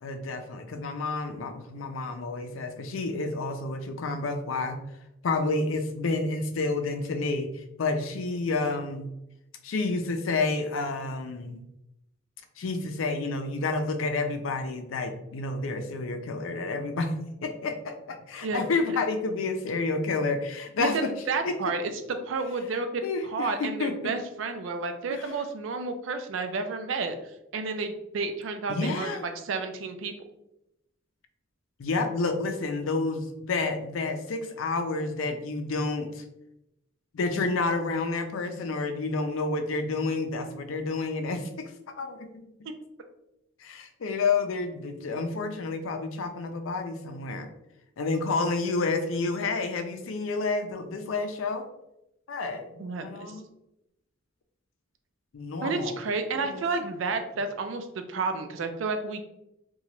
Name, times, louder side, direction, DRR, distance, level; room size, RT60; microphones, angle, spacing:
voice 1, 0.0-4.8 5.2-9.1 9.6-11.6 12.6-17.1 17.4-21.1 21.4-21.5 23.0-24.1 25.1-25.3 28.7-29.2 31.8-36.2 37.1-41.7 42.0-42.4 43.6-47.5 48.0-51.7 52.3-53.5 55.3-55.9 56.4-56.6, left 3 dB, 85° left, 7 dB, 0.4 m, -30 dB
voice 2, 21.3-27.1 27.5-29.1 29.4-30.1 52.8-53.4 55.6-59.2, right 4 dB, 70° right, 7 dB, 0.4 m, -31 dB
2.8 x 2.3 x 3.0 m, 0.86 s
head